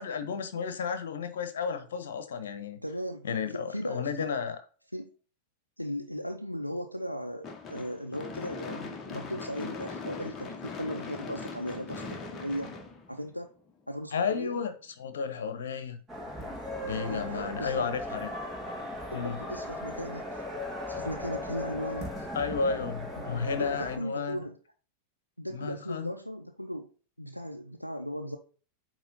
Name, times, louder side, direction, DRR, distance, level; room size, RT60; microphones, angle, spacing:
voice 1, 0.0-2.8 3.2-4.6 14.1-14.7 15.0-16.0 16.8-18.3 19.1-19.4 22.3-24.4 25.5-26.1, left 6 dB, 65° left, 1.1 m, -32 dB
voice 2, 2.8-4.4 4.9-5.1 5.8-12.8 13.1-13.5 13.9-14.6 17.1-17.9 19.1-20.4 20.9-22.3 23.2-24.6 25.4-26.9 27.2-28.4, equal, 90° left, 0.5 m, -37 dB
Gunshot gunfire / Fireworks, 7.4-13.7, left 4 dB, 25° left, 1.3 m, -40 dB
sound 1, 16.1-24.0, left 1 dB, 10° right, 2.2 m, -37 dB
8.9 x 3.2 x 5.2 m
figure-of-eight pair, 90°, 0 cm